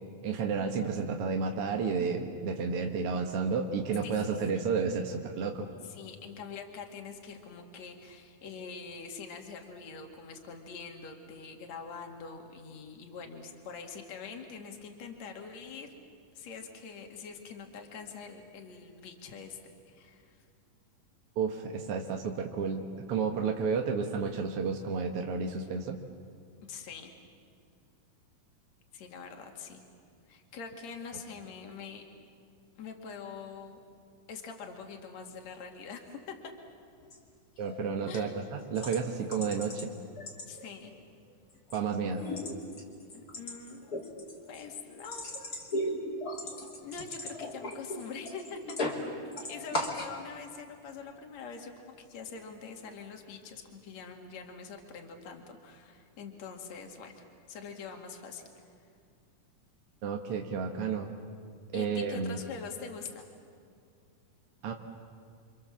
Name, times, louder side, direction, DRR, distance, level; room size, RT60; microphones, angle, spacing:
voice 1, 0.2-5.7 21.4-26.0 37.6-39.9 41.7-42.3 60.0-61.1 61.7-62.4 64.6-64.7, right 5 dB, 60° right, 3 dB, 1.6 m, -31 dB
voice 2, 4.0-4.7 5.8-15.9 16.3-19.6 19.9-20.4 26.7-27.2 28.9-29.8 30.3-32.0 32.8-33.8 34.3-36.2 38.1-38.4 40.5-40.9 43.1-43.9 44.5-45.4 46.8-48.8 49.4-58.4 61.7-63.3, left 5 dB, 55° left, 3 dB, 3.2 m, -44 dB
sound 1, 37.0-37.2 37.6-37.8 38.1-38.2 38.7-39.9 40.2-40.9 41.3-41.8 42.1-49.1 49.3-50.1, left 1 dB, 25° left, 2.9 m, -37 dB
30.0 x 25.5 x 7.5 m, 2.2 s
omnidirectional pair, 4.1 m